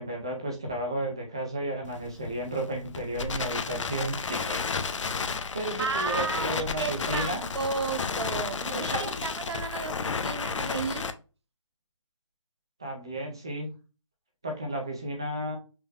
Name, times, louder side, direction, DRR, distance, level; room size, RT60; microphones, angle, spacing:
voice 1, 0.0-4.6 5.5-7.4 8.7-9.1 12.8-13.7 14.4-15.6, right 1 dB, 10° right, 0.3 m, -33 dB
Crackle, 1.9-11.1, left 5 dB, 65° left, 0.6 m, -32 dB
voice 2, 5.8-11.1, right 5 dB, 55° right, 0.7 m, -33 dB
5.6 x 2.1 x 3.5 m
hypercardioid pair, 170°, 17 cm